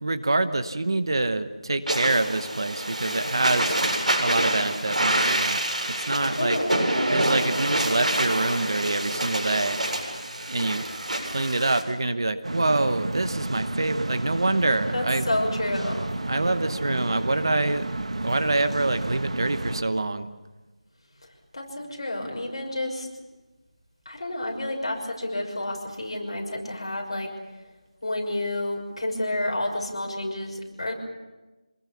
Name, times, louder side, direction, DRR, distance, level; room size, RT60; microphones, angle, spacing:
voice 1, 0.0-3.8 4.2-6.6 7.1-9.8 10.5-10.9 11.2-15.3 16.2-17.9 18.2-20.3, right 2 dB, 40° right, 11 dB, 1.0 m, -26 dB
sound 1, 1.9-11.8, right 1 dB, 80° right, 7.7 m, -27 dB
voice 2, 6.4-7.0 14.9-16.1 21.5-23.1 24.0-27.3 28.0-30.9, left 1 dB, 45° left, 1 dB, 6.1 m, -30 dB
sound 2, 12.4-19.8, right 2 dB, 60° right, 1.3 m, -31 dB
27.0 x 20.5 x 7.2 m, 1.2 s
figure-of-eight pair, 180°, 4 cm